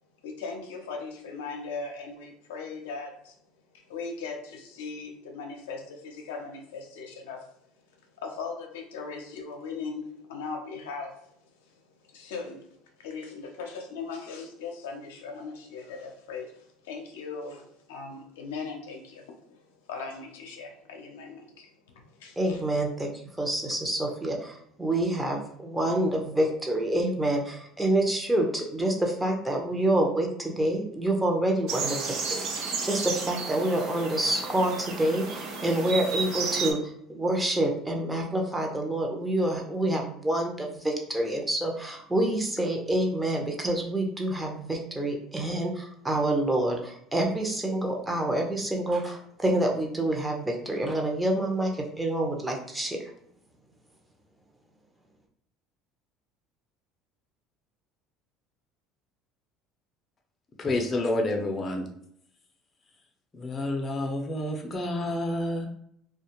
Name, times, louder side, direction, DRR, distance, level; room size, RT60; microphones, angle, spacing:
voice 1, 0.2-22.6, left 4 dB, 85° left, 3 dB, 0.5 m, -39 dB
voice 2, 22.4-23.1 23.4-53.0, right 1 dB, 10° right, 1 dB, 0.7 m, -27 dB
sound 1, 31.7-36.7, right 5 dB, 65° right, 0.5 m, -33 dB
voice 3, 60.6-61.9 63.3-65.7, left 1 dB, 30° left, 2 dB, 0.6 m, -29 dB
2.4 x 2.3 x 2.9 m, 0.70 s
supercardioid pair, 85°, 0 cm